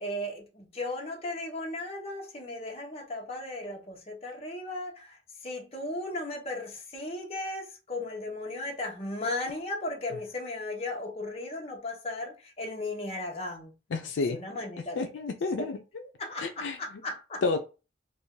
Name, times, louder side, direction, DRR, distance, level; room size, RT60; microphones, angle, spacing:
voice 1, 0.0-13.7 14.3-15.0 15.6-15.7 16.2-17.4, left 2 dB, 35° left, 0.8 m, -36 dB
voice 2, 13.9-14.4 15.0-16.1 16.4-16.8 17.4-17.6, left 3 dB, 80° left, 0.4 m, -30 dB
2.5 x 2.3 x 3.6 m
head